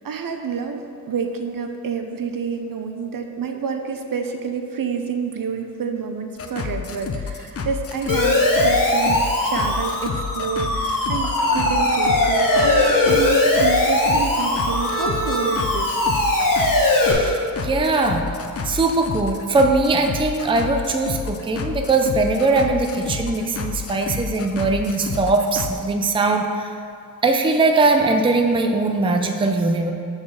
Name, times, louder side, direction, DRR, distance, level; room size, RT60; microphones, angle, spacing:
voice 1, 0.0-0.8 1.1-15.9, right 5 dB, 70° right, 5 dB, 0.6 m, -28 dB
sound 1, 6.4-25.7, left 5 dB, 40° left, 0.5 m, -30 dB
Siren, 8.1-17.1, left 1 dB, 65° left, 1.3 m, -20 dB
voice 2, 17.0-17.4 17.6-18.3 18.6-26.7 27.2-29.9, right 3 dB, 15° right, 4 dB, 0.4 m, -20 dB
6.2 x 4.0 x 6.3 m, 2.5 s
wide cardioid pair, 125°, 36 cm